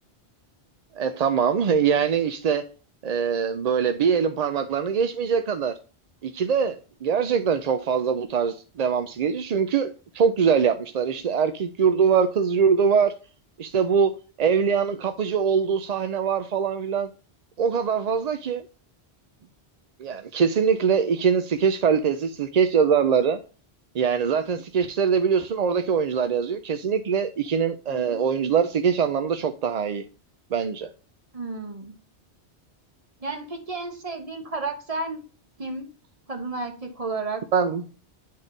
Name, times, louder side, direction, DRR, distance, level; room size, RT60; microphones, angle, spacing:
voice 1, 1.0-2.6 3.0-5.7 6.2-13.1 13.6-14.1 14.4-17.1 17.6-18.7 20.0-23.4 23.9-30.0 30.5-30.9 37.5-37.8, right 6 dB, 55° right, 0.5 m, -23 dB
voice 2, 27.9-28.3 31.3-31.9 33.2-35.2 35.6-35.9 36.3-37.4, right 3 dB, 35° right, 1.2 m, -32 dB
9.5 x 3.8 x 3.8 m
omnidirectional pair, 1.1 m